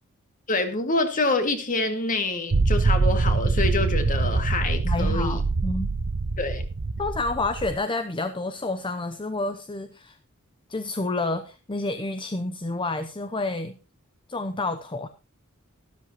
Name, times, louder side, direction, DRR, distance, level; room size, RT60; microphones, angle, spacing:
voice 1, 0.5-5.4 6.4-6.6, left 2 dB, 40° left, 7 dB, 2.2 m, -26 dB
sound 1, 2.5-7.7, right 3 dB, 60° right, 0.8 m, -24 dB
voice 2, 4.8-5.9 7.0-10.2 10.7-13.8 14.3-15.1, left 2 dB, 25° left, 9 dB, 0.8 m, -29 dB
13.5 x 12.5 x 3.0 m, 0.30 s
head